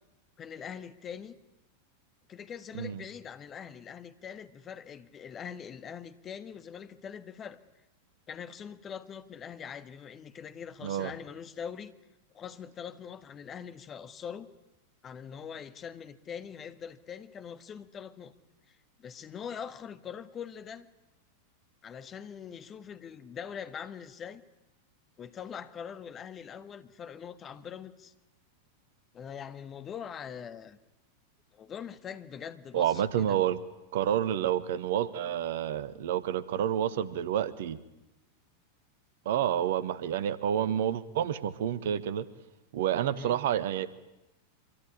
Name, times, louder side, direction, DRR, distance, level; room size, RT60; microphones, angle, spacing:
voice 1, 0.4-1.3 2.3-7.6 8.3-11.9 12.3-14.5 15.0-18.3 18.7-20.9 21.8-24.4 25.2-28.1 29.1-30.8 31.5-33.4 43.1-43.4, left 7 dB, 25° left, 1.7 m, -43 dB
voice 2, 32.7-33.6 33.9-37.8 39.2-42.2 42.7-43.9, right 10 dB, 55° right, 1.4 m, -29 dB
25.5 x 24.0 x 9.6 m
figure-of-eight pair, 90°, 0 cm